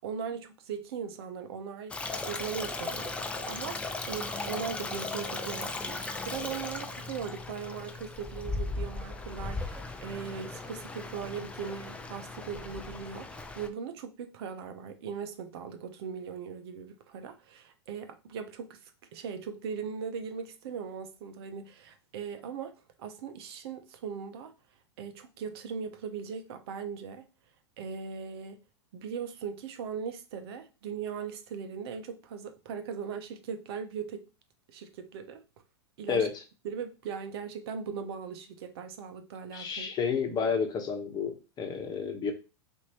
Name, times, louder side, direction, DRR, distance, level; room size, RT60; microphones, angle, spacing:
voice 1, 0.0-3.8 4.1-24.5 25.0-27.2 27.8-28.6 28.9-34.2 34.7-35.4 36.0-36.3 36.6-39.9, right 6 dB, 60° right, 0.8 m, -39 dB
Stream, 1.9-13.7, left 3 dB, 10° left, 0.5 m, -37 dB
voice 2, 36.1-36.4 39.5-42.3, left 6 dB, 30° left, 1.1 m, -30 dB
5.9 x 2.7 x 2.9 m
hypercardioid pair, 115°, 15 cm